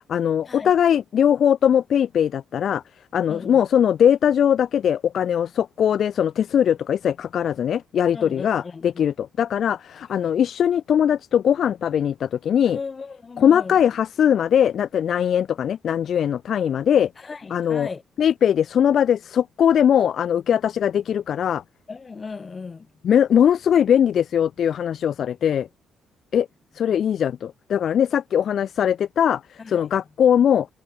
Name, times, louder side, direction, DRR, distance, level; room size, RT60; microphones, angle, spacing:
voice 1, 0.1-2.8 3.1-12.8 13.4-17.1 17.5-17.9 18.2-21.6 23.0-25.7 26.3-26.5 26.7-30.7, left 9 dB, 60° left, 0.7 m, -20 dB
voice 2, 3.3-3.6 8.1-9.1 10.2-10.3 12.7-13.8 17.2-18.0 21.9-22.9 29.6-29.9, left 4 dB, 35° left, 7.2 m, -37 dB
cardioid pair, 90°, 0 cm